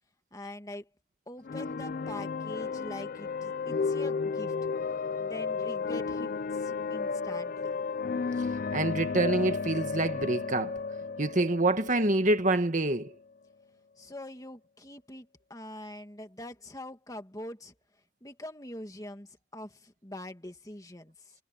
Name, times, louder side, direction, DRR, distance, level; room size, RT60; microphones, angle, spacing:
voice 1, 0.3-0.9 1.3-4.5 5.2-7.8 14.0-17.7 18.2-21.3, left 1 dB, 15° left, 2.2 m, -44 dB
sound 1, 1.4-13.1, left 5 dB, 45° left, 0.4 m, -33 dB
voice 2, 8.7-10.7 11.2-13.1, right 2 dB, 40° right, 1.5 m, -26 dB
head